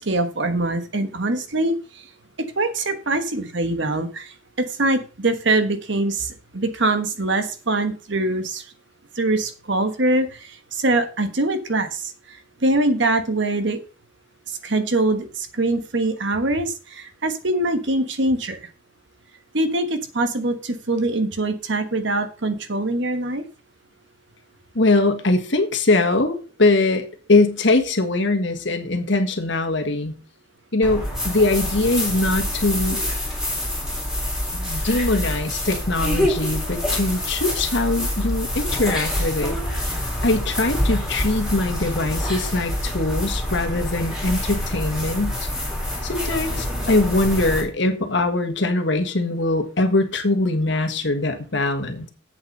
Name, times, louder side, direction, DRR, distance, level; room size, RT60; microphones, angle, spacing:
voice 1, 0.0-1.8 2.6-8.6 9.2-12.4 12.6-13.8 14.6-18.6 19.5-23.5, right 2 dB, 60° right, 1.3 m, -23 dB
voice 2, 24.7-30.2 30.7-33.0 34.5-39.6 40.2-45.5 46.0-52.1, left 2 dB, 60° left, 1.6 m, -22 dB
sound 1, 30.8-47.6, left 1 dB, 5° right, 3.5 m, -26 dB
8.1 x 7.2 x 5.3 m
head